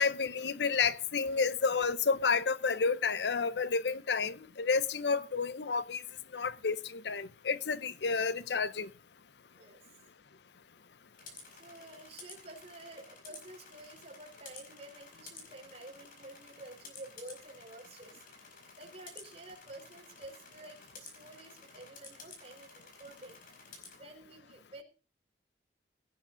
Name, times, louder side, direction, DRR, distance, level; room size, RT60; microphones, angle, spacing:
voice 1, 0.0-6.0 6.3-8.9, left 5 dB, 75° left, 0.7 m, -30 dB
sound 1, 11.1-24.0, left 4 dB, 55° left, 4.6 m, -53 dB
voice 2, 11.5-18.2 18.8-23.4 23.9-24.8, right 2 dB, 35° right, 4.0 m, -50 dB
17.0 x 10.0 x 3.8 m
head